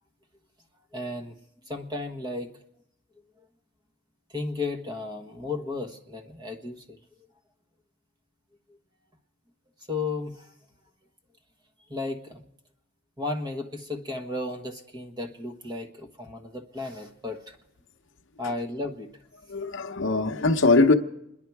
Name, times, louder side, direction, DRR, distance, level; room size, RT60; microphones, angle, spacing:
voice 1, 0.9-1.3 1.7-2.5 4.3-6.8 9.9-10.5 11.9-12.4 13.2-17.6 18.4-19.1 20.8-20.9, left 2 dB, 20° right, 1.2 m, -34 dB
voice 2, 19.5-20.9, left 3 dB, 60° left, 0.9 m, -21 dB
28.0 x 11.0 x 4.7 m
head